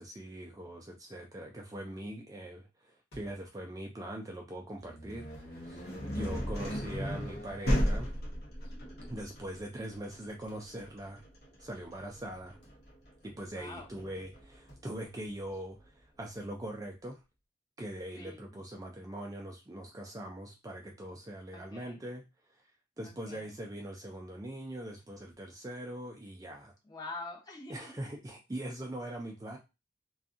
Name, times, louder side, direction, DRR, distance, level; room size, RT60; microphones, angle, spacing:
voice 1, 0.0-5.8 6.1-8.1 9.1-11.2 11.6-12.6 13.2-17.2 17.8-22.2 23.0-26.7 27.7-29.6, right 1 dB, 20° right, 1 dB, 0.4 m, -42 dB
sound 1, 3.1-3.5 5.3-5.6 7.8-8.1 10.5-10.7 12.6-12.9 14.7-14.9, equal, 80° left, 1.1 m, -54 dB
sound 2, 4.8-14.6, equal, 60° left, 0.7 m, -35 dB
voice 2, 5.8-6.2 13.5-14.0 18.1-18.5 21.5-22.0 23.0-23.5 26.8-28.0, left 2 dB, 25° left, -1 dB, 0.7 m, -46 dB
2.6 x 2.3 x 2.4 m, 0.25 s
head